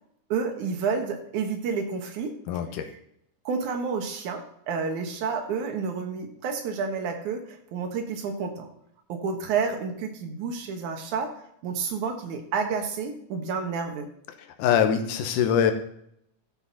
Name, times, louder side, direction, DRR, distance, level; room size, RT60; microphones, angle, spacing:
voice 1, 0.3-2.3 3.4-8.7 9.1-11.4 11.6-14.1, right 5 dB, 70° right, 4 dB, 2.8 m, -30 dB
voice 2, 2.5-2.9 14.6-15.7, left 8 dB, 80° left, 8 dB, 2.5 m, -23 dB
13.5 x 6.1 x 4.1 m, 0.72 s
omnidirectional pair, 3.7 m